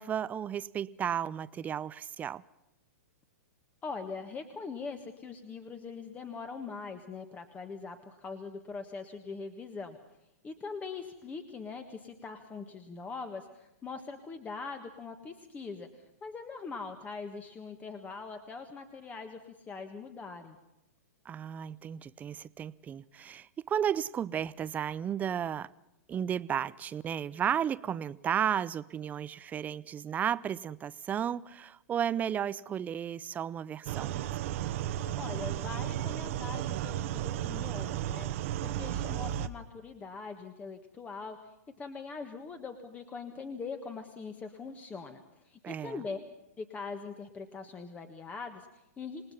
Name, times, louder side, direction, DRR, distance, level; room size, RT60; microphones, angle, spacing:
voice 1, 0.0-2.4 21.3-25.7 26.1-34.3 45.6-46.0, right 9 dB, 20° right, 0.7 m, -33 dB
voice 2, 3.8-10.0 10.4-20.6 35.2-38.3 38.6-46.2 46.6-49.3, left 4 dB, 15° left, 1.6 m, -42 dB
sound 1, 33.9-39.5, right 12 dB, 50° right, 1.2 m, -34 dB
28.0 x 19.0 x 5.7 m
hypercardioid pair, 130°, 9 cm